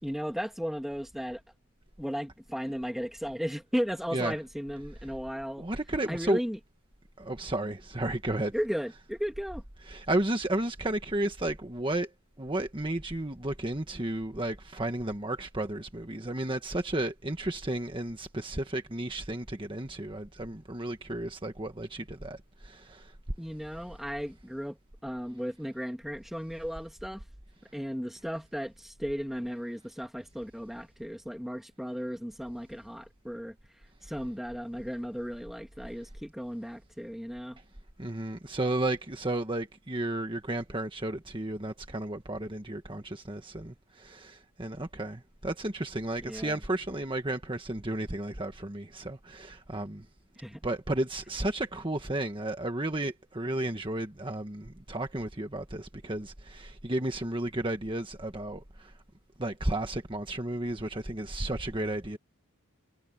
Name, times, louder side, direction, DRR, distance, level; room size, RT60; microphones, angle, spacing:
voice 1, 0.0-1.4 2.0-5.6 6.1-6.6 8.5-9.6 23.4-24.8 25.0-27.2 27.7-33.5 34.0-37.6 46.2-46.6 50.4-50.6, equal, ahead, 2.7 m, -35 dB
voice 2, 5.6-6.4 7.2-8.5 9.9-12.1 12.4-23.1 38.0-50.0 50.6-58.9 59.4-62.2, right 1 dB, 20° right, 1.5 m, -33 dB
head